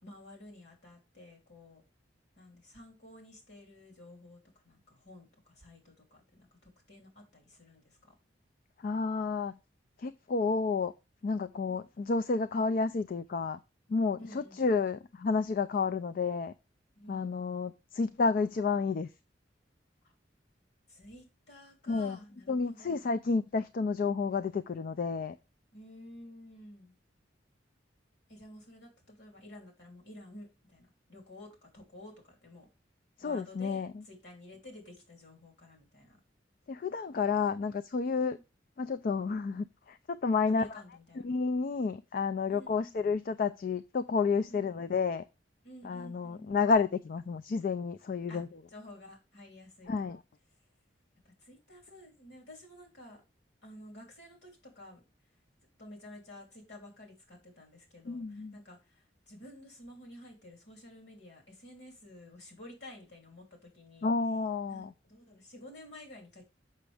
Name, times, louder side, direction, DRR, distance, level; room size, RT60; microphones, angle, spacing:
voice 1, 0.0-1.8 2.4-8.1 14.2-14.8 16.9-17.5 20.0-20.1 20.9-23.1 25.7-27.0 28.3-32.7 33.2-36.2 38.1-38.4 40.5-41.3 42.5-43.0 44.5-44.8 45.6-46.7 48.3-48.4 48.7-50.1 51.2-53.2 53.6-55.0 55.8-64.1 64.7-66.5, left 1 dB, 65° left, 3.0 m, -52 dB
voice 2, 8.8-9.6 10.0-10.9 11.2-13.6 13.9-16.5 17.1-19.1 21.9-22.2 22.5-25.4 33.2-33.9 36.7-38.4 38.8-40.7 41.2-45.2 45.8-48.5 49.9-50.2 58.1-58.5 64.0-64.9, left 4 dB, 50° left, 0.4 m, -30 dB
6.6 x 6.1 x 3.3 m
head